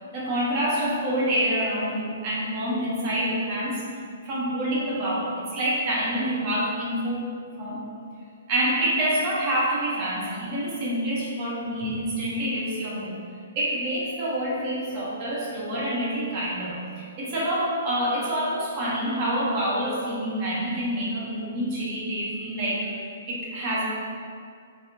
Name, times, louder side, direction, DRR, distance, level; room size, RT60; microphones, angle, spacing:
voice 1, 0.1-3.8 4.2-7.3 7.6-7.8 8.5-13.2 13.5-23.8, right 1 dB, 40° right, -7 dB, 1.0 m, -27 dB
3.4 x 3.1 x 2.8 m, 2.3 s
hypercardioid pair, 140°, 0 cm